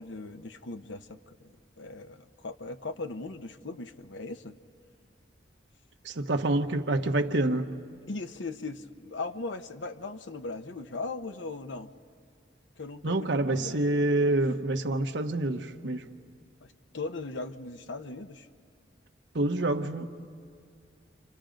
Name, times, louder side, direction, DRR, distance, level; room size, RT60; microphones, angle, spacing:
voice 1, 0.0-1.5 1.8-4.5 8.1-11.9 12.8-13.8 16.9-18.5, left 3 dB, 85° left, 0.8 m, -38 dB
voice 2, 6.0-7.7 13.0-16.1 19.3-20.0, right 2 dB, 75° right, 1.1 m, -27 dB
29.5 x 27.0 x 5.2 m
head